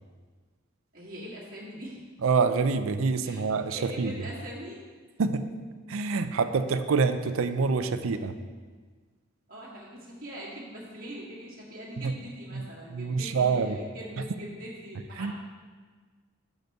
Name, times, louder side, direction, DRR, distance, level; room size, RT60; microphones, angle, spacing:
voice 1, 0.9-2.0 3.2-3.4 3.7-4.8 9.5-15.3, equal, 40° right, -6 dB, 1.6 m, -42 dB
voice 2, 2.2-4.1 5.2-5.4 5.9-8.3 12.0-12.1 12.5-12.6 12.9-13.8 15.2-15.3, right 4 dB, 70° right, 10 dB, 0.4 m, -26 dB
5.9 x 5.2 x 6.5 m, 1.5 s
head